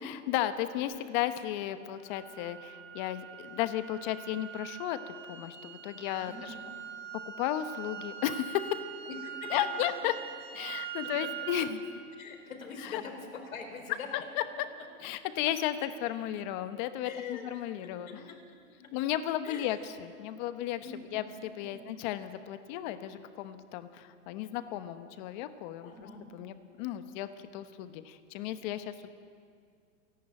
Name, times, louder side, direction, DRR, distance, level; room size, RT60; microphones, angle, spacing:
voice 1, 0.0-5.0 5.3-6.3 7.4-8.8 9.5-10.1 10.5-11.8 12.8-13.0 14.4-14.5 15.0-18.2 18.9-20.9 21.1-25.9 26.3-29.1, left 12 dB, 35° left, 11 dB, 1.1 m, -34 dB
sound 1, 2.1-11.8, right 10 dB, 70° right, 2.1 m, -43 dB
voice 2, 6.2-6.6 9.1-9.9 11.0-11.3 11.6-11.7 12.2-14.3 14.6-14.9 17.0-17.5 17.8-18.9 19.4-19.8 20.8-21.2 21.6-21.9 25.8-26.2, left 4 dB, 85° left, 4 dB, 4.3 m, -44 dB
28.0 x 11.0 x 8.9 m, 2.2 s
hypercardioid pair, 150°, 40 cm